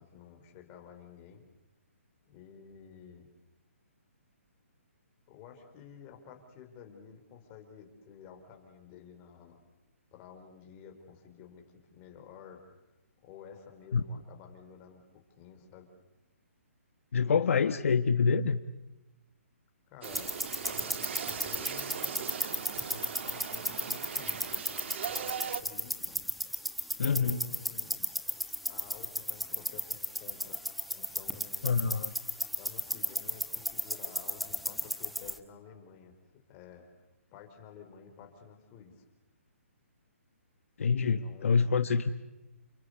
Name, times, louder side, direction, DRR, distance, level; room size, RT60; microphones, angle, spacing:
voice 1, 0.0-1.4 2.2-3.3 5.3-9.6 10.1-12.6 13.2-15.9 19.9-22.5 22.9-26.2 27.0-28.1 28.7-31.7 32.5-36.9 37.3-39.1 40.9-41.7 42.1-42.2, left 7 dB, 25° left, 4 dB, 4.6 m, -52 dB
voice 2, 17.1-18.6 27.0-27.4 31.6-32.1 40.8-42.1, left 5 dB, 65° left, 10 dB, 1.2 m, -26 dB
sound 1, 20.0-35.4, equal, ahead, 1.0 m, -36 dB
sound 2, 20.0-25.6, right 8 dB, 55° right, 1.5 m, -39 dB
29.5 x 24.0 x 8.2 m, 0.98 s
hypercardioid pair, 155°, 8 cm